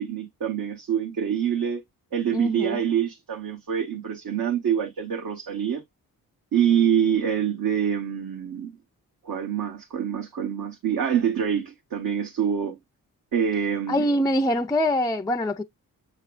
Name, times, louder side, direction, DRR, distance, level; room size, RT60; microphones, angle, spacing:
voice 1, 0.0-1.8 2.1-5.8 6.5-8.7 9.2-12.8 13.3-14.0, right 8 dB, 70° right, 1.0 m, -25 dB
voice 2, 2.3-2.8 13.9-15.6, left 1 dB, 10° left, 0.4 m, -24 dB
6.8 x 3.3 x 2.4 m
cardioid pair, 80°, 37 cm